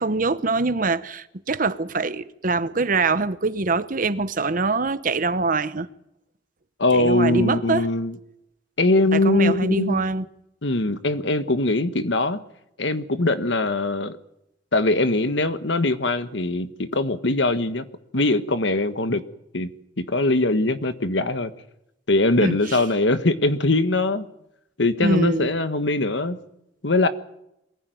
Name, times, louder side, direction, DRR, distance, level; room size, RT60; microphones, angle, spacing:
voice 1, 0.0-5.9 6.9-7.9 9.1-10.3 22.4-22.6 25.0-25.5, right 3 dB, 45° right, 0.9 m, -23 dB
voice 2, 6.8-8.1 8.8-10.0 10.6-12.4 12.8-14.2 14.7-17.8 18.1-19.2 19.5-19.7 20.0-21.5 22.1-24.3 24.8-26.4 26.8-27.1, left 2 dB, 70° left, 1.4 m, -22 dB
22.5 x 15.5 x 9.3 m
head